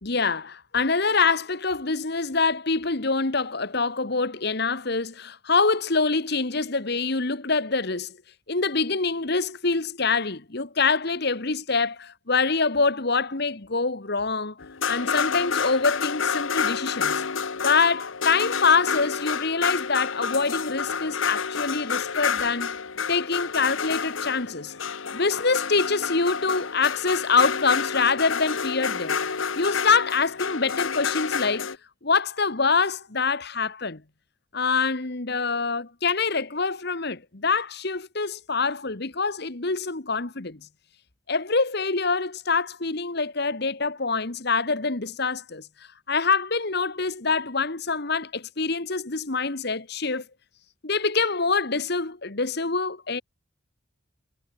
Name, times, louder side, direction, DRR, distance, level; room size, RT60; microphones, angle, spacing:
voice 1, 0.0-8.2 8.5-14.6 14.8-17.2 17.6-22.8 23.1-24.7 25.1-29.2 29.6-31.7 32.0-34.0 34.5-40.6 41.3-45.7 46.1-50.2 50.8-53.2, left 4 dB, 55° left, 1.5 m, -25 dB
sound 1, 14.6-31.8, left 6 dB, 75° left, 1.1 m, -29 dB
head